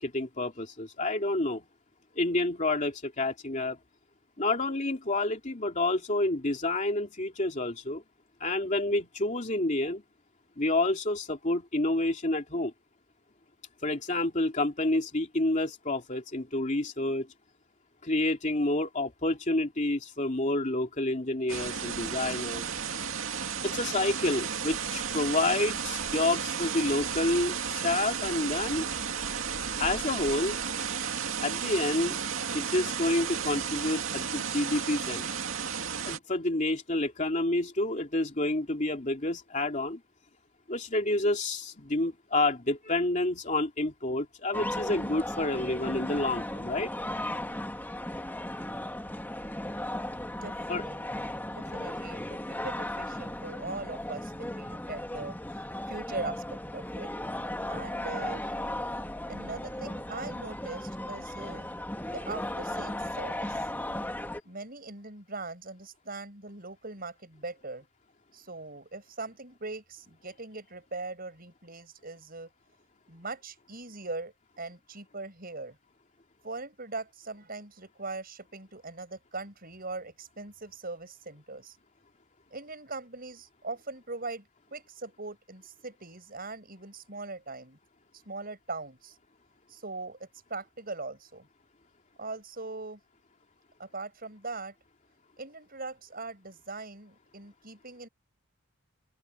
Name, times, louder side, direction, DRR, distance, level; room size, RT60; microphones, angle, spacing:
voice 1, 0.0-1.6 2.2-3.8 4.4-8.0 8.4-10.0 10.6-12.7 13.8-17.3 18.0-22.7 23.6-28.9 29.8-30.6 31.4-32.2 32.5-35.3 36.1-40.0 40.7-46.9 50.7-50.8, left 2 dB, 35° left, 2.8 m, -29 dB
sound 1, 21.5-36.2, right 7 dB, 75° right, 2.3 m, -33 dB
sound 2, 44.5-64.4, left 1 dB, 10° left, 2.4 m, -36 dB
voice 2, 50.4-57.1 57.7-58.5 59.3-61.7 62.1-63.7 64.4-67.8 68.3-72.5 73.1-75.8 76.4-81.8 82.5-87.8 88.2-89.2 89.7-91.5 92.2-93.0 93.8-94.7 95.4-98.1, right 3 dB, 45° right, 7.9 m, -41 dB
head